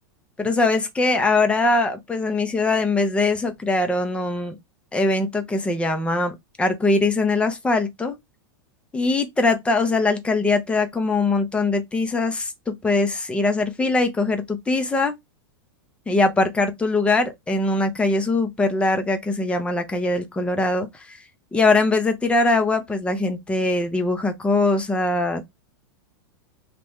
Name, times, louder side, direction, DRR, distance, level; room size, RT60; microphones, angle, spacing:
voice 1, 0.4-4.5 4.9-8.2 8.9-12.5 12.8-15.1 16.1-20.9 21.5-25.4, left 2 dB, 10° left, 0.7 m, -22 dB
3.0 x 2.5 x 3.5 m
hypercardioid pair, 125°, 12 cm